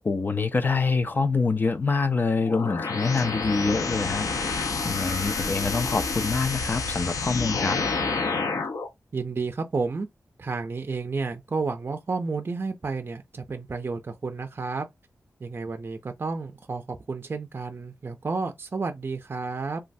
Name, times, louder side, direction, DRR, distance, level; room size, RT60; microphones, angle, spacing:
voice 1, 0.0-7.8, left 4 dB, 35° left, 0.4 m, -26 dB
sound 1, 2.5-8.9, left 4 dB, 85° left, 0.5 m, -28 dB
voice 2, 9.1-10.1 10.4-14.9 15.4-19.8, right 4 dB, 40° right, 0.4 m, -31 dB
3.1 x 2.2 x 2.6 m
wide cardioid pair, 130°, 6 cm